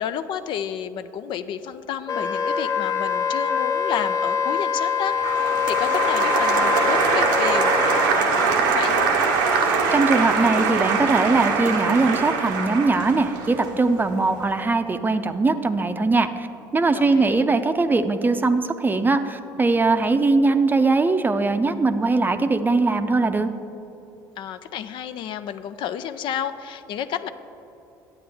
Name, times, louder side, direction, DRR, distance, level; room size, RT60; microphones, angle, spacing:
voice 1, 0.0-9.2 16.9-17.5 24.4-27.3, left 9 dB, 60° left, 11 dB, 0.4 m, -31 dB
Wind instrument woodwind instrument, 2.1-8.1, left 7 dB, 35° left, 0.8 m, -24 dB
Applause, 5.2-14.3, right 5 dB, 85° right, 0.9 m, -22 dB
voice 2, 9.6-16.5 16.7-23.5, right 3 dB, 20° right, 9 dB, 0.5 m, -21 dB
10.0 x 8.5 x 3.5 m, 3.0 s
hypercardioid pair, 70°, 10 cm